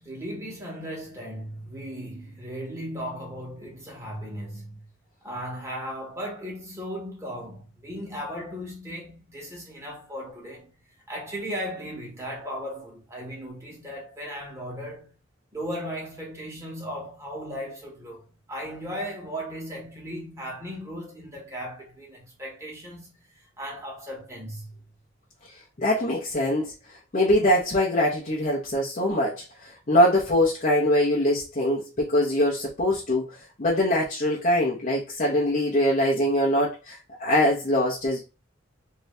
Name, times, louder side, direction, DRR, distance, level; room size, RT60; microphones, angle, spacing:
voice 1, 0.0-4.8 5.2-10.7 11.1-15.1 15.5-18.2 18.5-23.3 23.6-24.7, equal, 15° right, 1.4 m, -36 dB
voice 2, 25.8-38.2, left 1 dB, 40° left, 0.8 m, -23 dB
3.1 x 2.7 x 3.2 m
head